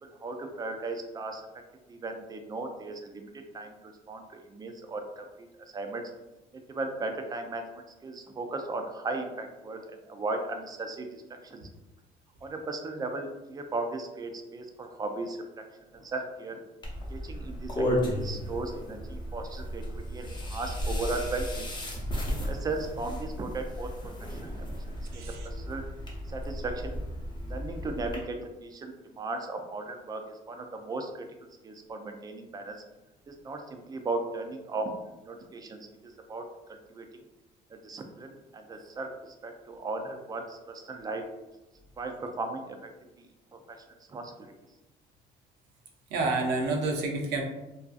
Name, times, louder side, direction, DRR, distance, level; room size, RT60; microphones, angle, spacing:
voice 1, 0.0-1.5 1.9-5.5 5.7-6.0 6.5-11.7 12.4-15.4 15.9-16.6 17.1-17.9 18.1-21.7 22.3-23.9 24.2-24.5 25.1-25.8 26.3-27.0 27.4-31.3 31.6-32.8 33.3-34.9 35.3-37.1 37.7-41.2 42.0-42.9 43.5-43.8 44.1-44.5, right 3 dB, 25° right, 5 dB, 0.3 m, -37 dB
sound 1, 16.8-28.2, equal, 25° left, 0.7 m, -34 dB
voice 2, 25.1-25.5 46.1-47.4, right 3 dB, 85° right, 2 dB, 0.5 m, -29 dB
2.6 x 2.3 x 2.3 m, 1.0 s
cardioid pair, 110°, 17 cm